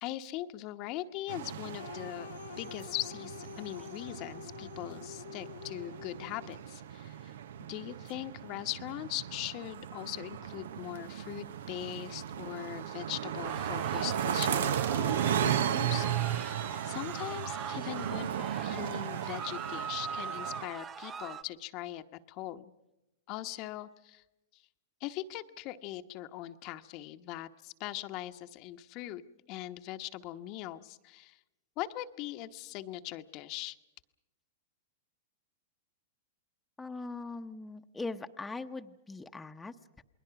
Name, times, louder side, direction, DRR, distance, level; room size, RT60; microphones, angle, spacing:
voice 1, 0.0-2.3 2.6-7.4 7.7-22.7 23.3-24.2 24.5-24.6 25.0-29.2 29.5-31.4 31.8-33.8, left 15 dB, 45° left, 8 dB, 1.0 m, -41 dB
sound 1, 1.3-20.7, right 10 dB, 75° right, 0.9 m, -36 dB
sound 2, 1.8-6.7, left 10 dB, 80° left, 0.7 m, -47 dB
sound 3, 13.4-21.4, right 6 dB, 25° right, 0.9 m, -41 dB
voice 2, 36.8-40.0, left 3 dB, 10° left, 5 dB, 0.9 m, -41 dB
29.0 x 21.0 x 5.9 m, 0.94 s
hypercardioid pair, 125°, 0 cm